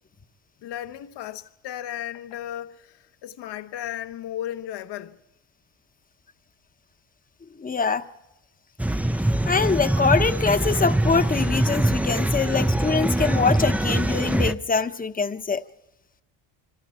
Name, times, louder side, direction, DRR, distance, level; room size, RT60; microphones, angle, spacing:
voice 1, 0.6-5.2, left 11 dB, 65° left, 1.3 m, -35 dB
voice 2, 7.6-8.0 9.5-15.6, left 5 dB, 20° left, 1.0 m, -23 dB
sound 1, 8.8-14.5, right 1 dB, 5° right, 0.6 m, -23 dB
26.0 x 24.5 x 4.4 m
supercardioid pair, 90°, 45 cm